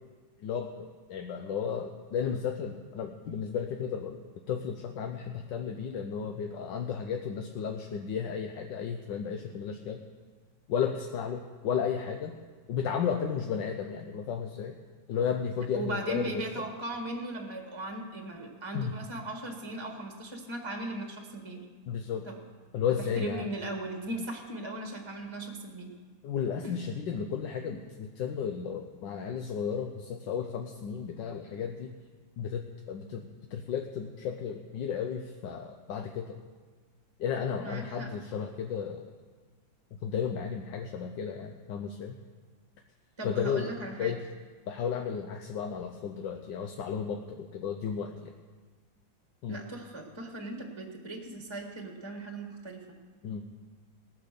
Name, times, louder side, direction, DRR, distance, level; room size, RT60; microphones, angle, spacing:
voice 1, 0.4-0.7 1.1-4.2 4.5-10.0 10.7-12.3 12.7-14.7 15.1-16.4 18.7-18.9 21.9-22.3 22.7-23.5 26.2-31.9 32.4-36.4 37.2-39.0 39.9-42.1 43.2-43.7 44.0-44.2 44.7-48.3 49.4-49.6 53.2-53.4, left 7 dB, 70° left, 4 dB, 1.5 m, -33 dB
voice 2, 15.7-21.7 22.2-22.4 23.0-25.9 26.6-26.7 37.6-38.1 43.2-44.1 49.5-53.0, right 2 dB, 15° right, 3 dB, 1.3 m, -38 dB
18.0 x 9.4 x 6.8 m, 1.4 s
omnidirectional pair, 2.1 m